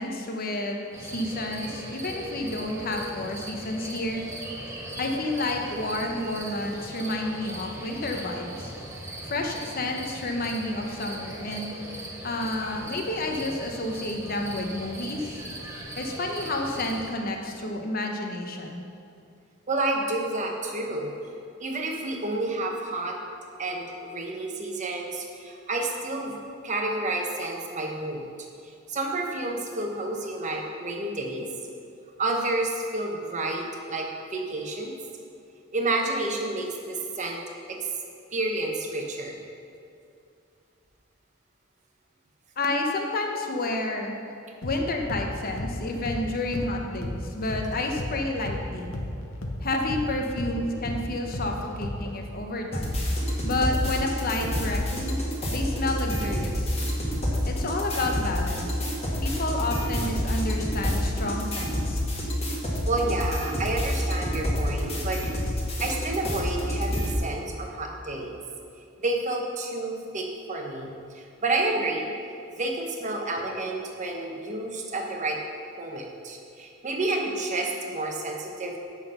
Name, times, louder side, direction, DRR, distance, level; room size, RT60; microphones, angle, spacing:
voice 1, 0.0-4.2 5.0-8.7 9.2-15.4 16.0-18.8 42.6-44.1 44.6-48.9 49.6-53.0 53.4-55.2 55.5-56.7 57.5-58.9 59.2-62.0, left 2 dB, 45° left, 2 dB, 0.9 m, -30 dB
sound 1, 0.9-17.1, right 1 dB, 15° right, 0.9 m, -39 dB
voice 2, 19.7-21.1 21.6-23.2 23.6-26.4 26.6-28.3 28.9-31.5 32.2-34.9 35.7-37.4 37.7-37.9 38.3-39.4 62.5-62.6 62.9-65.2 65.8-68.4 69.0-72.1 72.5-75.4 75.8-78.8, right 2 dB, 35° right, 1 dB, 1.0 m, -30 dB
sound 2, 44.6-52.3, left 1 dB, 70° left, 0.9 m, -35 dB
sound 3, 52.7-67.1, equal, 30° left, 1.4 m, -28 dB
7.5 x 5.9 x 5.5 m, 2.5 s
head